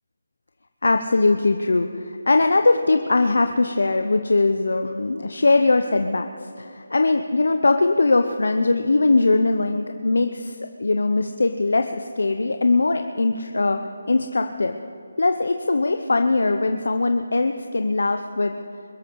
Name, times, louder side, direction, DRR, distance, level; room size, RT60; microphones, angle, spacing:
voice 1, 0.8-6.3 6.6-13.8 14.1-14.8 15.2-18.5, left 3 dB, 75° left, 6 dB, 0.8 m, -21 dB
22.0 x 12.5 x 4.7 m, 2.5 s
figure-of-eight pair, 170°, 0 cm